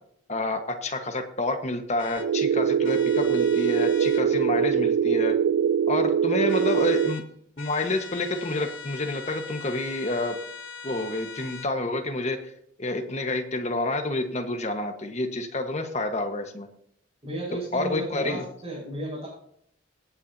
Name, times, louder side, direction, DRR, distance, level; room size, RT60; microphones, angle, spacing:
voice 1, 0.3-5.4 5.9-7.2 7.6-10.4 10.8-12.5 12.8-16.7 17.7-18.4, left 2 dB, 35° left, 6 dB, 1.2 m, -29 dB
sound 1, 2.0-2.3 2.8-4.3 6.5-7.3 7.6-11.7, left 6 dB, 70° left, 1.0 m, -41 dB
sound 2, 2.2-7.2, right 8 dB, 80° right, 0.4 m, -23 dB
voice 2, 17.2-19.3, right 1 dB, 25° right, -7 dB, 5.1 m, -34 dB
17.5 x 8.8 x 2.7 m, 0.66 s
head